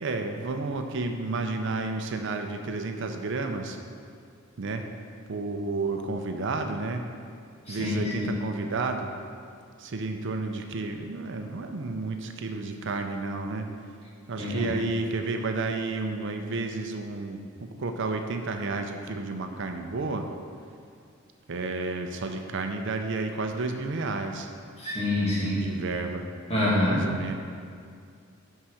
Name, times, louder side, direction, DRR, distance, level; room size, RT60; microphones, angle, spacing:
voice 1, 0.0-3.8 4.6-4.9 5.3-7.0 7.7-9.1 9.8-13.7 14.3-17.4 17.8-20.3 21.5-24.5 25.5-26.2 26.9-27.3, right 3 dB, 60° right, 5 dB, 0.5 m, -31 dB
voice 2, 7.7-8.4 14.4-14.7 24.8-25.7 26.5-27.0, left 1 dB, 30° left, -7 dB, 2.1 m, -26 dB
6.0 x 5.6 x 6.3 m, 2.3 s
head